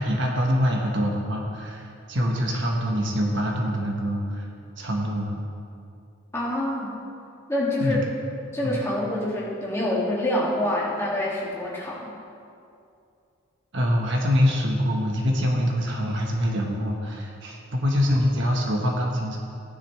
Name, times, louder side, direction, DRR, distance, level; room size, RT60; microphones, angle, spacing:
voice 1, 0.0-4.5 4.8-5.4 7.8-8.0 8.6-8.8 13.7-19.4, equal, 55° right, 0 dB, 1.3 m, -24 dB
voice 2, 6.3-7.0 7.5-8.1 8.5-12.1, left 1 dB, 15° left, -6 dB, 2.3 m, -26 dB
15.5 x 10.0 x 3.3 m, 2.5 s
head